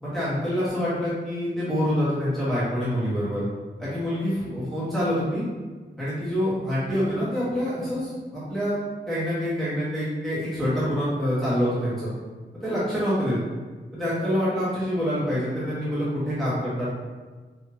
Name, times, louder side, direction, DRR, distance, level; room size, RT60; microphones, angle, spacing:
voice 1, 0.0-3.4 3.8-5.4 6.0-8.8 9.1-12.1 12.6-13.4 13.9-16.9, equal, ahead, -12 dB, 1.3 m, -26 dB
3.9 x 2.8 x 2.8 m, 1.4 s
wide cardioid pair, 90°, 19 cm